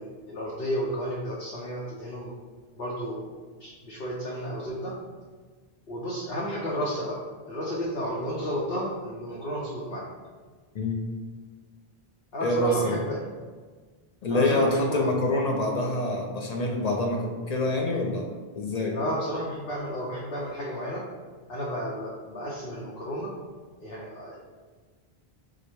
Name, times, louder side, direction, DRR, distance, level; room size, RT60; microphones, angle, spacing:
voice 1, 0.0-2.3 2.8-3.3 3.6-4.9 5.9-7.2 7.5-10.1 12.3-13.2 14.3-15.0 18.9-21.0 21.5-23.3 23.8-24.4, equal, 70° left, -5 dB, 1.0 m, -32 dB
voice 2, 12.4-13.0 14.2-18.3 18.5-19.0, left 1 dB, 55° left, 0 dB, 0.5 m, -26 dB
4.7 x 2.1 x 4.4 m, 1.4 s
omnidirectional pair, 1.0 m